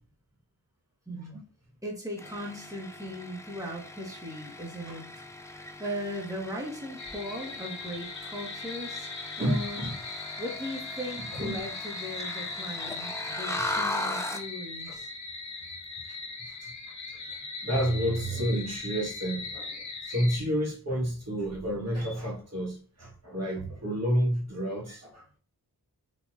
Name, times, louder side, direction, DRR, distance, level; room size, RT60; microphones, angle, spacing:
voice 1, 1.1-1.4 1.8-5.1 5.5-9.1 9.4-9.9 10.4-15.1, equal, 10° right, 1.3 m, -38 dB
sound 1, 2.2-14.5, left 1 dB, 10° left, 0.3 m, -39 dB
sound 2, 7.0-20.4, left 4 dB, 45° left, 0.7 m, -39 dB
voice 2, 9.4-9.9 11.2-11.7 13.6-13.7 14.9-15.0 16.1-16.7 17.1-25.4, equal, 40° right, 1.4 m, -31 dB
4.0 x 2.8 x 2.4 m
wide cardioid pair, 60°, 40 cm